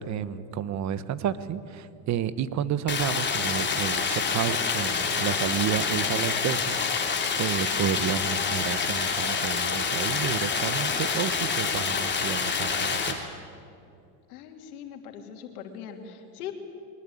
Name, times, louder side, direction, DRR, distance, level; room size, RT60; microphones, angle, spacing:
voice 1, 0.0-13.2, right 9 dB, 40° right, 15 dB, 1.1 m, -31 dB
Stream, 2.9-13.1, left 5 dB, 25° left, 3.2 m, -27 dB
voice 2, 14.3-16.5, left 9 dB, 85° left, 4 dB, 3.0 m, -40 dB
23.0 x 19.5 x 8.7 m, 2.5 s
supercardioid pair, 115°, 44 cm